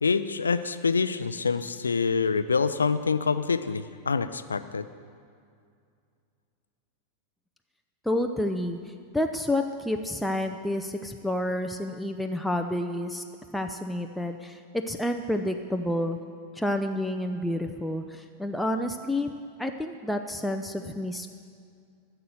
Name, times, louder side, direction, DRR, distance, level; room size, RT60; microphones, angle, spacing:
voice 1, 0.0-4.9, left 5 dB, 75° left, 12 dB, 0.5 m, -26 dB
voice 2, 8.1-8.8 9.1-13.2 13.5-14.6 14.9-16.2 16.6-19.3 19.6-21.3, left 1 dB, ahead, 4 dB, 0.6 m, -29 dB
13.5 x 6.9 x 7.7 m, 2.3 s
figure-of-eight pair, 90°, 0 cm